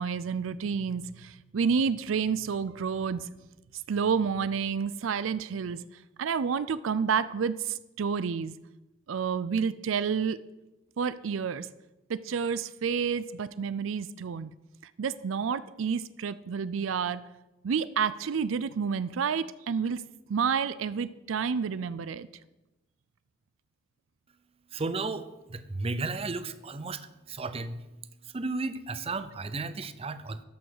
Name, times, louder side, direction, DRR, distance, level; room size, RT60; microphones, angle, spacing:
voice 1, 0.0-3.3 3.9-5.8 6.2-8.6 9.1-10.4 11.0-11.7 12.1-14.5 15.0-17.2 17.6-20.0 20.3-22.3, right 6 dB, 75° right, 16 dB, 0.4 m, -29 dB
voice 2, 24.7-27.0 27.3-27.8 28.3-30.4, right 3 dB, 30° right, 12 dB, 0.6 m, -34 dB
13.0 x 6.3 x 6.6 m, 1.0 s
head